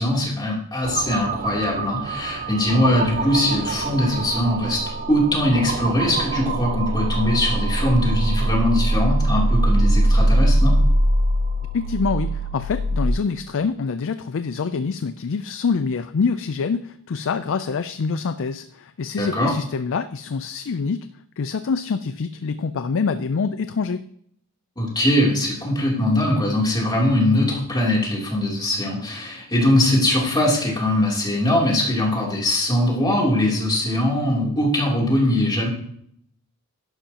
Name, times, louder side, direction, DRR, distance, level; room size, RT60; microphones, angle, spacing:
voice 1, 0.0-4.8 5.1-10.7 19.2-19.5 24.8-35.7, left 1 dB, 20° left, -3 dB, 3.1 m, -21 dB
sound 1, 0.8-13.1, right 1 dB, 40° right, 0.6 m, -22 dB
voice 2, 11.7-21.1 21.4-24.0, left 5 dB, 60° left, 11 dB, 0.4 m, -25 dB
11.5 x 10.5 x 2.9 m, 0.67 s
head